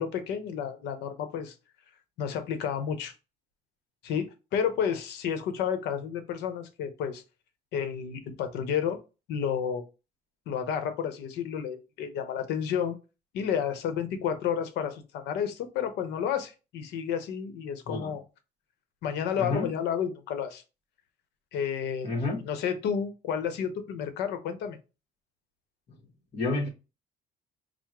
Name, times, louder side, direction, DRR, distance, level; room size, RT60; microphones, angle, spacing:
voice 1, 0.0-1.5 2.2-3.1 4.0-7.2 7.7-9.0 9.3-9.8 10.5-13.0 13.3-18.2 19.0-20.6 21.5-22.1 22.4-24.8, left 8 dB, 85° left, 0.8 m, -31 dB
voice 2, 17.9-18.2 19.4-19.7 22.0-22.4 26.3-26.7, left 2 dB, 40° left, 1.0 m, -29 dB
4.7 x 2.0 x 3.5 m
cardioid pair, 110°, 17 cm